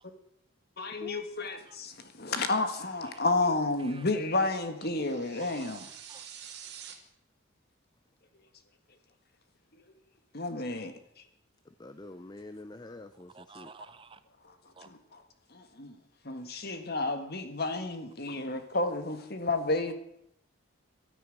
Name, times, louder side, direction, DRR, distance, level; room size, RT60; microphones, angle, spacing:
voice 1, 0.8-5.9 10.3-11.2 14.4-14.6 14.8-15.2 15.5-16.0 16.2-19.9, left 2 dB, 45° left, 1.7 m, -31 dB
sound 1, 4.8-6.9, right 9 dB, 50° right, 2.5 m, -47 dB
voice 2, 5.4-6.3 13.3-14.2 14.8-14.9, right 4 dB, 25° right, 0.6 m, -50 dB
voice 3, 11.7-13.7, left 2 dB, 20° left, 0.5 m, -46 dB
12.5 x 10.5 x 9.1 m
head